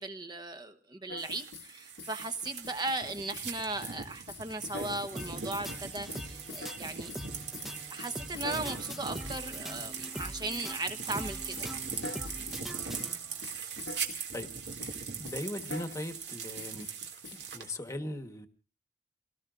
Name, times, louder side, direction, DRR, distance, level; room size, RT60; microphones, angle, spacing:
voice 1, 0.0-7.1 7.9-11.6, right 2 dB, 25° right, 8 dB, 1.1 m, -37 dB
sound 1, 1.1-1.7 2.0-3.5 3.8-4.0 4.3-5.4 5.7-7.3 7.5-10.8 11.1-11.3 11.6-12.7 13.0-13.2 13.4-14.5 14.8-15.0 15.2-16.3 16.6-17.4, left 4 dB, 75° left, 1.2 m, -46 dB
sound 2, 1.2-17.7, right 6 dB, 70° right, 2.4 m, -40 dB
sound 3, 5.1-13.5, equal, ahead, 0.9 m, -43 dB
voice 2, 15.2-16.9 17.3-18.5, left 1 dB, 15° left, 7 dB, 1.3 m, -39 dB
28.5 x 18.5 x 2.6 m, 0.38 s
head